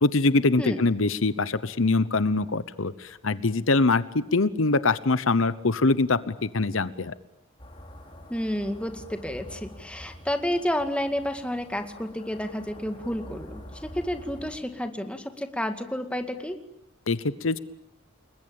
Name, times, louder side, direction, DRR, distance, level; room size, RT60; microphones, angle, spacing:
voice 1, 0.0-7.1 17.1-17.6, left 3 dB, 70° left, 15 dB, 1.0 m, -23 dB
sound 1, 7.6-14.6, left 1 dB, 25° left, 5.2 m, -46 dB
voice 2, 8.3-16.6, equal, 5° left, 7 dB, 2.0 m, -30 dB
29.5 x 21.5 x 8.8 m, 0.82 s
head